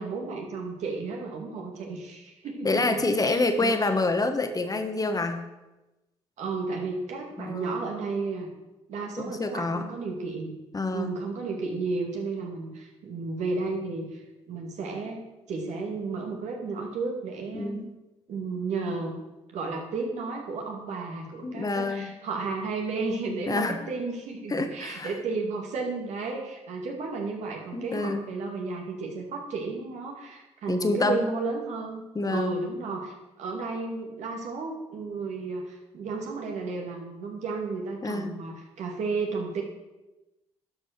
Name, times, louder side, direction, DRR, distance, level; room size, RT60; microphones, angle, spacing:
voice 1, 0.0-3.8 6.4-8.5 8.9-10.5 10.9-14.2 14.5-15.2 15.5-17.8 18.3-19.2 19.5-39.6, right 3 dB, 70° right, 1 dB, 2.3 m, -33 dB
voice 2, 2.6-5.4 7.4-7.7 9.2-9.9 10.7-11.1 17.5-17.9 18.9-19.0 21.4-22.1 23.5-23.8 24.5-25.1 27.7-28.2 30.7-31.2 32.1-32.6 38.0-38.4, left 2 dB, 30° left, 7 dB, 1.3 m, -27 dB
11.5 x 5.3 x 6.5 m, 1.0 s
supercardioid pair, 60°, 12 cm